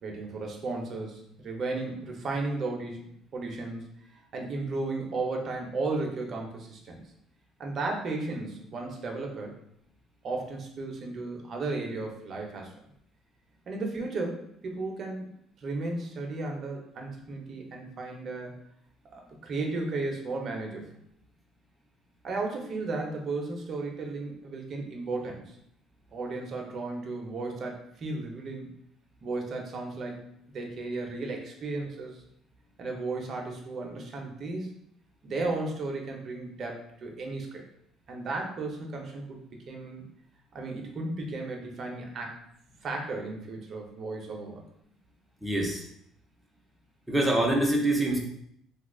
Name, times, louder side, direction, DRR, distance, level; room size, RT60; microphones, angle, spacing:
voice 1, 0.0-3.0 3.3-3.9 4.3-7.0 7.6-9.6 10.2-12.7 13.7-15.3 15.6-18.6 19.1-20.9 22.2-25.6 26.1-28.7 29.2-32.2 32.8-34.7 35.2-37.6 38.1-39.4 39.7-40.0 40.5-42.3 42.8-44.6, right 3 dB, 45° right, 1 dB, 0.8 m, -34 dB
voice 2, 45.4-45.8 47.1-48.2, right 1 dB, 5° right, -1 dB, 0.7 m, -25 dB
2.8 x 2.3 x 3.7 m, 0.73 s
cardioid pair, 110°, 0 cm